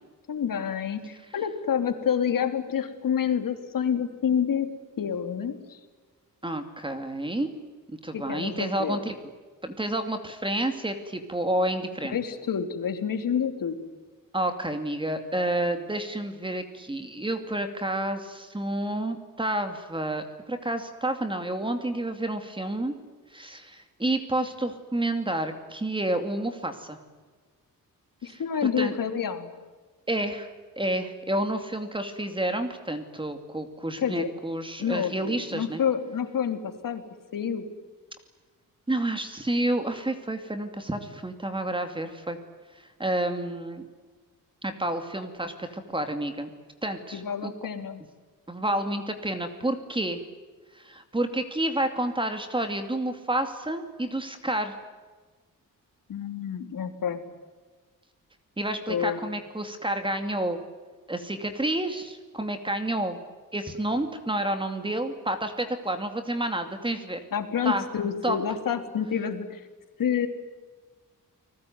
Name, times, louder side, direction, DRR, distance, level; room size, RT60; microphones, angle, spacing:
voice 1, 0.3-4.7 5.0-5.8 8.1-9.0 12.1-13.8 28.2-29.5 34.0-34.3 34.8-37.0 37.3-37.6 47.1-48.0 56.1-57.2 58.9-59.2 67.3-69.6 70.0-70.3, left 8 dB, 70° left, 7 dB, 3.1 m, -28 dB
voice 2, 6.4-7.5 7.9-9.2 9.6-12.2 14.3-22.9 23.3-27.0 28.2-28.4 28.8-28.9 30.1-30.5 30.8-35.8 38.9-42.4 43.0-43.8 44.6-46.5 46.8-47.5 48.5-50.2 50.7-54.7 58.6-60.6 61.1-63.2 63.5-67.2 67.6-67.9 68.2-68.4, right 1 dB, 15° right, 7 dB, 2.5 m, -29 dB
30.0 x 20.5 x 9.4 m, 1.4 s
wide cardioid pair, 140°, 34 cm